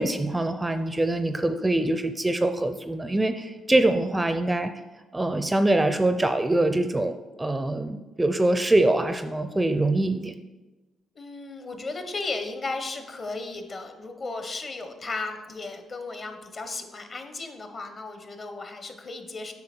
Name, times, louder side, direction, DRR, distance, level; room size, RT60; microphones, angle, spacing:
voice 1, 0.0-4.7 5.1-10.3, right 2 dB, 15° right, 10 dB, 0.4 m, -24 dB
voice 2, 11.1-19.5, left 3 dB, 40° left, 6 dB, 1.0 m, -35 dB
7.7 x 5.8 x 4.4 m, 1.2 s
cardioid pair, 90°, 0 cm